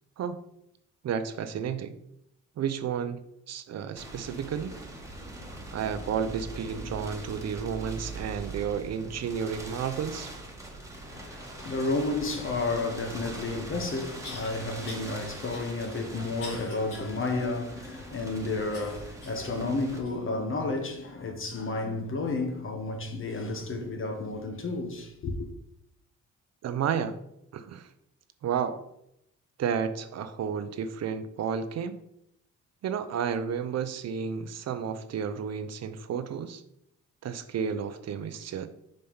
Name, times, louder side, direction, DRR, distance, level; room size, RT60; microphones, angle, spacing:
voice 1, 1.0-1.9 2.6-4.7 5.7-10.3 26.6-27.2 27.5-27.9 28.4-28.8 29.6-32.0 32.8-36.6 37.2-38.7, right 7 dB, 60° right, 0.7 m, -32 dB
sound 1, 4.0-20.0, right 2 dB, 10° right, 1.5 m, -42 dB
voice 2, 10.9-25.5, left 2 dB, 45° left, 1.3 m, -32 dB
sound 2, 14.2-14.5 14.9-15.1 15.5-17.1 17.6-17.7 18.7-19.5 20.0-20.2 20.9-21.0, left 2 dB, 90° left, 2.2 m, -44 dB
5.3 x 4.4 x 5.6 m
cardioid pair, 90°, 30 cm